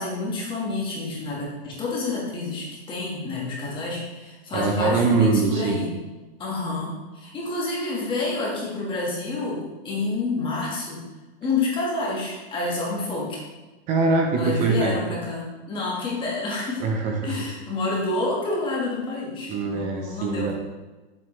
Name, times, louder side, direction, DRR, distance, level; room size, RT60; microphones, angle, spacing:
voice 1, 0.0-5.9 6.4-11.0 11.4-13.4 14.4-16.8 17.2-20.5, left 3 dB, 15° left, -4 dB, 1.6 m, -28 dB
voice 2, 4.5-5.8 13.9-14.9 16.8-17.3 19.5-20.5, right 4 dB, 20° right, 2 dB, 0.8 m, -22 dB
8.3 x 7.7 x 3.2 m, 1.2 s
supercardioid pair, 165°, 32 cm